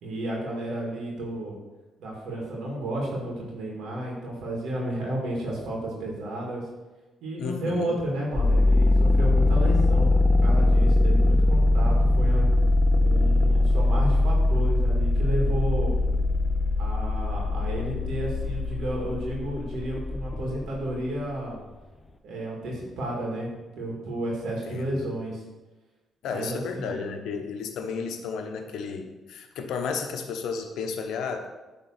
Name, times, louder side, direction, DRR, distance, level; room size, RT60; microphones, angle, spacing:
voice 1, 0.0-1.6 2.0-6.6 7.2-10.1 10.4-12.5 13.0-15.9 16.8-21.6 22.2-25.4 26.3-27.1, right 1 dB, 75° right, -2 dB, 2.0 m, -32 dB
voice 2, 7.4-8.0 24.7-25.1 26.2-31.5, left 5 dB, 80° left, 5 dB, 0.9 m, -33 dB
sound 1, 8.3-21.0, left 2 dB, 20° left, 0.7 m, -22 dB
8.7 x 3.7 x 5.7 m, 1.2 s
cardioid pair, 90°, 0 cm